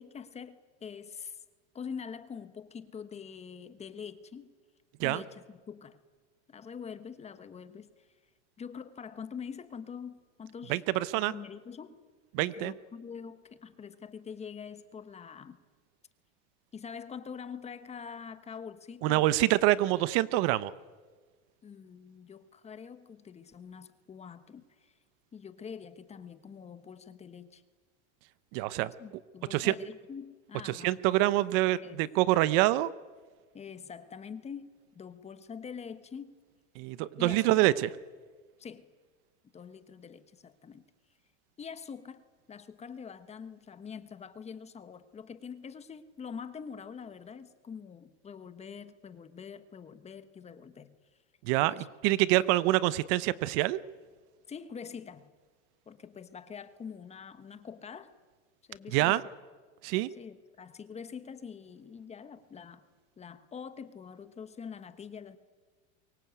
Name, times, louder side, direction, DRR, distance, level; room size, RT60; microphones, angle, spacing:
voice 1, 0.0-1.4 1.7-4.5 5.0-6.0 6.5-7.9 8.6-10.8 11.3-12.0 12.4-15.6 16.7-19.3 21.6-24.9 25.3-27.6 29.0-31.0 31.8-32.0 33.5-34.7 34.9-36.3 37.2-37.8 38.6-38.9 39.5-40.8 41.6-42.2 42.5-50.9 51.7-51.9 52.3-52.5 54.5-55.3 55.9-58.1 58.7-59.3 60.2-62.8 63.2-65.4, left 6 dB, 20° left, 12 dB, 1.2 m, -44 dB
voice 2, 10.7-11.3 12.3-12.7 19.0-20.7 28.5-28.9 29.5-29.7 30.6-32.9 36.8-37.9 51.5-53.8 58.9-59.2 59.8-60.1, right 16 dB, 55° right, 17 dB, 0.9 m, -26 dB
24.0 x 22.5 x 8.2 m, 1.4 s
supercardioid pair, 140°, 36 cm